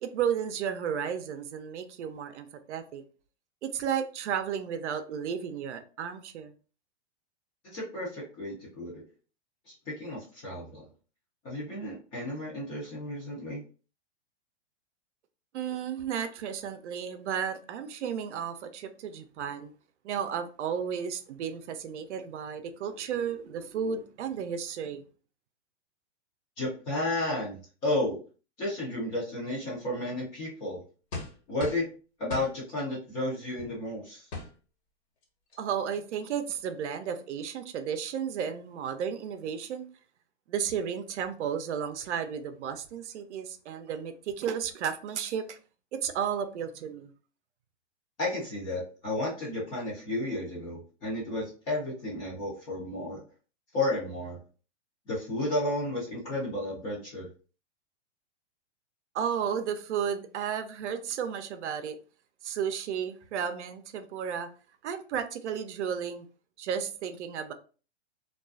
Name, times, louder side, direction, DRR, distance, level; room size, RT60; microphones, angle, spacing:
voice 1, 0.0-3.0 3.6-6.5 15.5-19.7 20.0-25.0 35.6-39.8 40.5-45.6 45.9-47.1 59.1-62.0 62.4-64.5 64.8-66.3 66.6-67.5, right 8 dB, 80° right, 0.5 m, -33 dB
voice 2, 7.7-9.0 9.9-10.8 11.4-13.6 26.6-28.2 28.6-30.8 31.5-31.8 32.2-34.3 48.2-53.2 53.7-54.4 55.1-57.3, left 1 dB, 15° left, 0.3 m, -32 dB
sound 1, 31.1-31.9 32.3-32.5 33.6-33.7 34.3-34.5 35.2-35.3 35.5-35.8, left 3 dB, 65° left, 1.2 m, -38 dB
2.3 x 2.3 x 2.3 m
hypercardioid pair, 150°, 34 cm